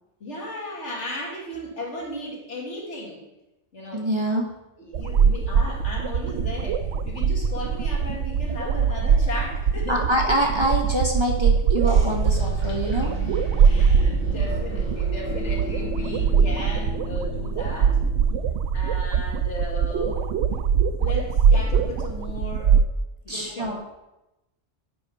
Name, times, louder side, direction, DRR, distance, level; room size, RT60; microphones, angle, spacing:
voice 1, 0.2-3.2 3.7-4.1 4.8-10.0 13.6-18.0 18.7-20.3 21.0-22.8 23.2-23.8, left 1 dB, 80° left, -2 dB, 2.2 m, -35 dB
voice 2, 3.9-4.5 9.9-13.1 14.4-14.5 23.3-23.8, right 1 dB, 25° right, 0 dB, 1.2 m, -25 dB
sound 1, 4.9-22.8, right 6 dB, 75° right, 0.9 m, -22 dB
sound 2, 11.8-18.5, equal, 10° left, 2.8 m, -33 dB
8.3 x 5.1 x 5.4 m, 0.95 s
omnidirectional pair, 1.2 m